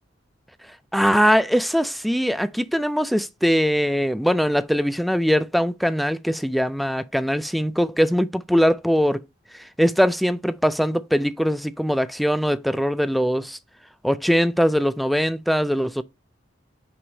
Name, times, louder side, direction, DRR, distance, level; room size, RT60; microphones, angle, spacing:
voice 1, 0.9-9.2 9.5-13.6 14.0-16.0, equal, ahead, 0.3 m, -21 dB
6.0 x 4.8 x 4.0 m
head